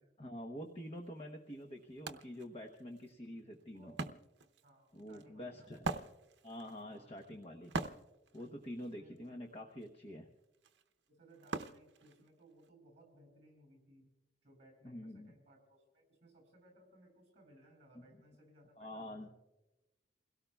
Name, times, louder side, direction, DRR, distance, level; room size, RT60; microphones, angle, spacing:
voice 1, 0.2-3.9 4.9-5.9 6.4-7.7 8.3-10.3 14.8-15.3 17.9-18.0 18.8-19.3, equal, 30° left, 2 dB, 1.0 m, -47 dB
Wood, 1.0-1.1 1.5-12.7, right 3 dB, 70° right, 0.8 m, -45 dB
voice 2, 4.6-5.7 6.9-7.2 8.9-9.2 11.1-14.1 14.4-19.4, right 1 dB, 35° right, 2 dB, 7.5 m, -63 dB
28.5 x 17.0 x 2.3 m, 1.0 s
head